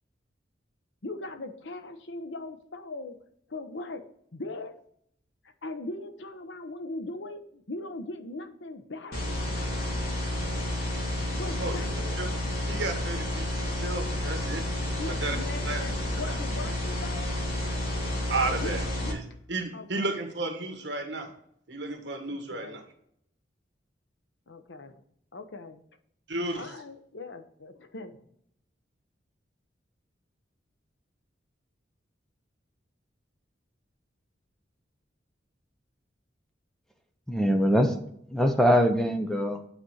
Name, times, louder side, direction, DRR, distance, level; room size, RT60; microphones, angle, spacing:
voice 1, 1.0-3.2 3.5-4.7 5.6-9.3 11.3-12.2 15.0-17.4 18.6-18.7 19.0-19.1 19.7-20.2 22.3-22.8 24.5-25.0 25.3-25.8 26.5-28.3, left 2 dB, 75° left, 0.9 m, -40 dB
sound 1, 9.1-19.1, left 1 dB, 50° left, 2.5 m, -30 dB
voice 2, 12.7-14.6 15.1-15.4 15.6-16.3 17.9-18.8 19.1-21.3 21.7-22.8 26.3-26.7, right 2 dB, 70° right, 1.7 m, -33 dB
voice 3, 37.3-38.0 38.3-39.6, equal, 5° left, 0.7 m, -23 dB
9.0 x 4.3 x 6.3 m
head